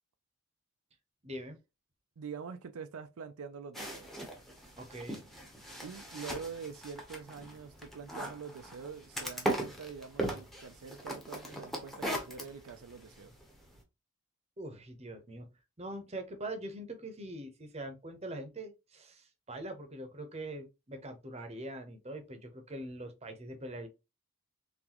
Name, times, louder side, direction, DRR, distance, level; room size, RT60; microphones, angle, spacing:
voice 1, 1.2-1.6 4.8-5.2 14.6-15.5 15.8-23.9, right 1 dB, 30° right, 0.8 m, -43 dB
voice 2, 2.2-4.1 5.8-13.3, right 6 dB, 80° right, 0.5 m, -45 dB
sound 1, 3.7-13.8, right 1 dB, ahead, 0.9 m, -39 dB
4.0 x 3.3 x 2.9 m
head